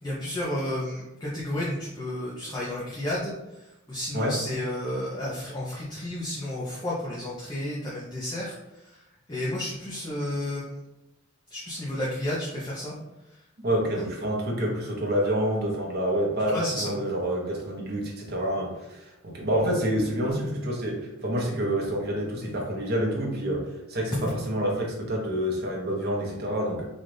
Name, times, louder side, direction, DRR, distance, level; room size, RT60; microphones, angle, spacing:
voice 1, 0.0-10.8 11.5-12.9 13.2-13.4 14.0-14.1 16.5-17.0, left 1 dB, 20° left, -7 dB, 0.6 m, -32 dB
voice 2, 13.6-26.8, equal, 50° right, -1 dB, 0.9 m, -28 dB
3.9 x 2.4 x 3.3 m, 0.95 s
head